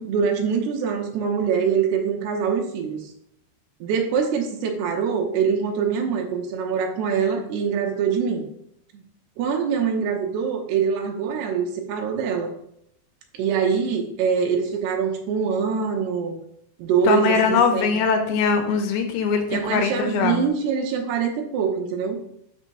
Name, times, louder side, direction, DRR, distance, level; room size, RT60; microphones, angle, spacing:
voice 1, 0.0-3.0 3.8-8.4 9.4-12.5 13.4-16.4 16.8-17.9 19.5-22.2, right 6 dB, 80° right, 2 dB, 2.9 m, -24 dB
voice 2, 17.0-20.4, left 6 dB, 80° left, 5 dB, 2.4 m, -21 dB
12.0 x 5.4 x 2.2 m, 0.74 s
omnidirectional pair, 4.8 m